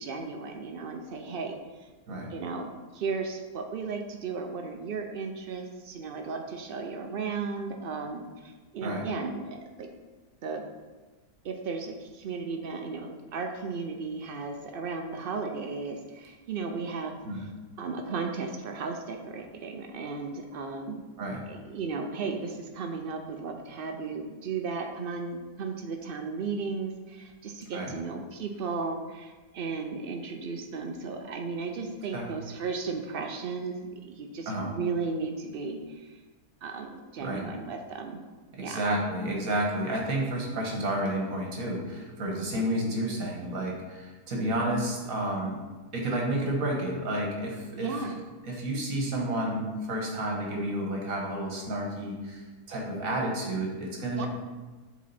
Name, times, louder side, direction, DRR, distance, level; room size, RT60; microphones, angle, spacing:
voice 1, 0.0-1.9 2.3-9.9 10.4-10.7 11.4-17.5 17.8-21.0 21.5-36.2 36.6-38.2 38.6-38.8 42.3-42.6 47.7-48.2 54.2-54.3, right 4 dB, 80° right, 4 dB, 0.5 m, -35 dB
voice 2, 38.5-45.6 45.9-48.1 48.4-54.3, right 1 dB, 65° right, -1 dB, 1.7 m, -31 dB
7.4 x 4.1 x 4.1 m, 1.3 s
omnidirectional pair, 1.6 m